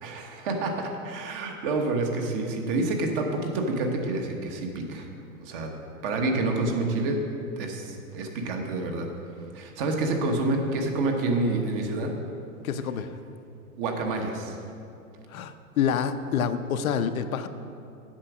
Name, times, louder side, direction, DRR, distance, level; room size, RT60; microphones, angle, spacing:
voice 1, 0.0-5.1 5.4-5.7 6.0-7.2 7.6-9.1 9.5-12.1 13.8-14.6, right 2 dB, 35° right, 3 dB, 1.2 m, -28 dB
voice 2, 12.6-13.1 15.3-17.5, left 7 dB, 65° left, 9 dB, 0.7 m, -27 dB
8.7 x 7.0 x 6.1 m, 2.6 s
hypercardioid pair, 145°, 46 cm